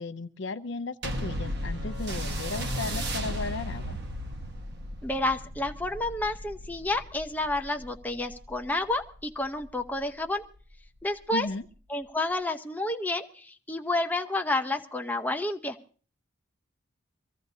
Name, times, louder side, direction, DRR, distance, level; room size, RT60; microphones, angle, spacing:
voice 1, 0.0-4.0 11.3-11.6, left 3 dB, 60° left, 10 dB, 0.6 m, -35 dB
sound 1, 1.0-9.8 10.6-10.7, equal, 55° right, 1.5 m, -35 dB
voice 2, 5.0-10.4 11.0-11.5 11.9-15.8, left 2 dB, 10° left, 4 dB, 0.7 m, -30 dB
24.0 x 15.0 x 2.7 m, 0.40 s
head